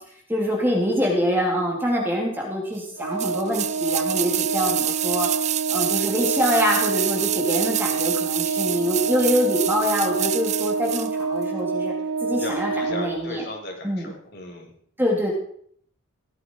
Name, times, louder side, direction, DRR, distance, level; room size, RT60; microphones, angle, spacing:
voice 1, 0.3-5.3 5.7-11.9 12.2-13.4 13.8-14.1 15.0-15.3, equal, 10° right, -1 dB, 3.3 m, -25 dB
Organ, 3.0-13.7, right 4 dB, 85° right, 1.0 m, -28 dB
sound 1, 3.2-11.1 11.4-11.5, right 12 dB, 30° right, 0.6 m, -27 dB
voice 2, 12.4-14.7, left 2 dB, 50° left, 1 dB, 4.5 m, -36 dB
17.5 x 13.5 x 4.9 m, 0.63 s
head